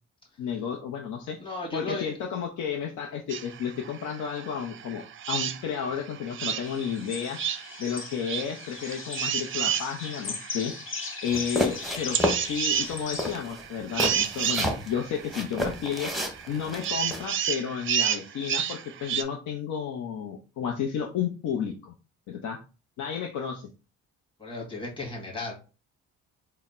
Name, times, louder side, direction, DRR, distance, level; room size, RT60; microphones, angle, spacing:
voice 1, 0.4-1.4 1.7-7.4 7.8-10.7 11.2-16.1 16.5-21.9 22.3-22.6 23.0-23.7, left 7 dB, 80° left, 1 dB, 0.7 m, -32 dB
voice 2, 1.4-2.1 24.4-25.5, left 2 dB, 15° left, -2 dB, 1.9 m, -35 dB
sound 1, 3.3-19.2, right 9 dB, 40° right, 0.4 m, -32 dB
sound 2, 6.6-13.3, left 4 dB, 45° left, 1.0 m, -38 dB
sound 3, 11.3-12.4 12.8-12.9 13.2-14.9 15.3-17.3, left 1 dB, ahead, 0.9 m, -30 dB
4.1 x 2.1 x 4.2 m, 0.32 s
cardioid pair, 90°, 30 cm